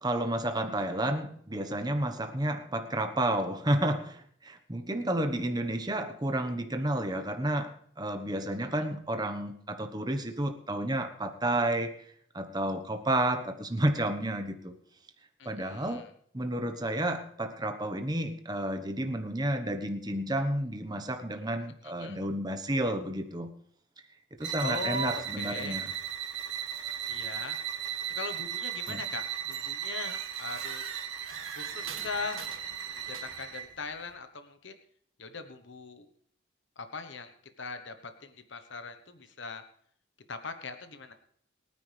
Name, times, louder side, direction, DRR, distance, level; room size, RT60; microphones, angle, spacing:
voice 1, 0.0-12.0 12.3-14.7 15.4-16.1 16.3-23.5 24.4-25.9 28.9-29.0, right 1 dB, 20° right, 6 dB, 1.2 m, -31 dB
voice 2, 15.4-16.1 22.0-22.2 24.6-25.8 27.1-27.6 28.1-31.0 31.5-32.5 33.1-34.8 35.2-36.1 36.8-39.6 40.3-41.1, left 4 dB, 60° left, 8 dB, 1.1 m, -40 dB
sound 1, 24.4-33.7, right 9 dB, 60° right, 2.1 m, -36 dB
sound 2, 28.9-29.2 29.5-33.6, right 6 dB, 85° right, 2.2 m, -45 dB
23.0 x 9.8 x 3.4 m, 0.64 s
head